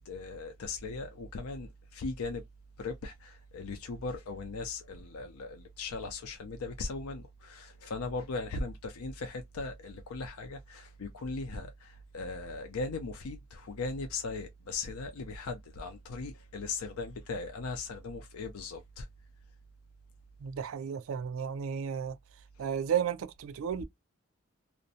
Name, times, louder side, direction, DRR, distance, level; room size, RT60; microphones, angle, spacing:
voice 1, 0.0-2.4 2.8-19.1, left 3 dB, 90° left, 0.5 m, -38 dB
voice 2, 20.4-22.2 22.6-23.8, right 8 dB, 70° right, 0.3 m, -33 dB
2.5 x 2.1 x 2.6 m
head